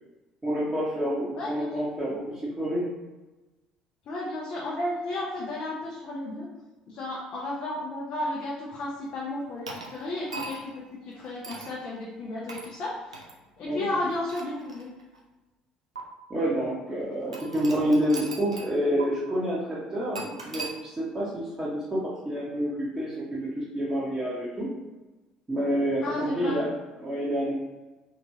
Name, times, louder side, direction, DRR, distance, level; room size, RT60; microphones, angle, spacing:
voice 1, 0.4-2.9 13.6-13.8 16.3-24.7 25.5-26.7 27.0-27.5, equal, 20° right, -10 dB, 1.0 m, -28 dB
voice 2, 1.3-1.7 4.1-6.5 6.9-13.3 13.6-14.9 26.0-26.6, left 1 dB, 45° left, -4 dB, 0.6 m, -33 dB
sound 1, 9.7-10.8 11.4-11.7 12.5-12.7 13.1-13.3 14.1-15.2 16.0-16.1 17.3-18.7 19.0-19.1 20.1-20.7, right 3 dB, 80° right, 0.4 m, -39 dB
3.5 x 2.9 x 2.7 m, 1.2 s
figure-of-eight pair, 55°, 3 cm